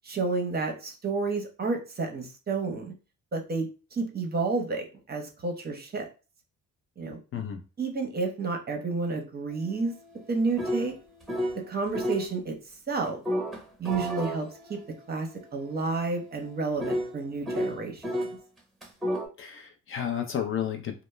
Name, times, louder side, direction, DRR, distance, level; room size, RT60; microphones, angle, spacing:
voice 1, 0.0-2.9 3.3-6.1 7.0-7.2 7.8-9.9 10.3-10.9 11.5-12.6 12.9-13.2 13.8-14.8 15.1-18.0, right 3 dB, 30° right, 3 dB, 0.7 m, -30 dB
sound 1, 9.5-11.6 11.9-12.3 13.2-18.3 18.8-19.3, equal, ahead, 0.9 m, -33 dB
voice 2, 19.4-21.0, left 9 dB, 45° left, 5 dB, 0.5 m, -32 dB
2.1 x 2.0 x 3.1 m, 0.32 s
cardioid pair, 90°, 30 cm